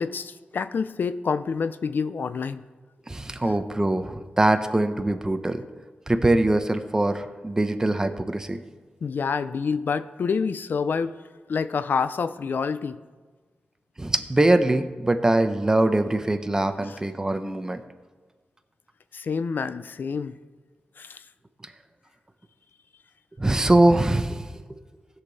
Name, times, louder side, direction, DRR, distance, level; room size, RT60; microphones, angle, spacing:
voice 1, 0.0-2.6 9.0-11.2 11.5-13.0 16.9-17.0 19.1-20.4 21.0-21.2, left 5 dB, 65° left, 13 dB, 0.5 m, -27 dB
voice 2, 3.1-5.6 6.1-8.6 14.0-17.8 23.4-24.8, right 2 dB, 15° right, 8 dB, 0.7 m, -22 dB
19.0 x 6.7 x 4.0 m, 1.4 s
wide cardioid pair, 135°, 4 cm